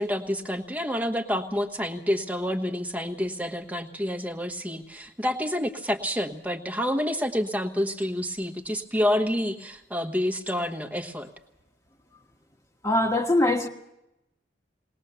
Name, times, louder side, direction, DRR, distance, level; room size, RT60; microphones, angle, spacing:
voice 1, 0.0-11.3, equal, 10° right, 6 dB, 1.2 m, -28 dB
voice 2, 12.8-13.7, left 1 dB, 15° left, 3 dB, 1.5 m, -22 dB
21.0 x 19.5 x 7.0 m, 0.89 s
head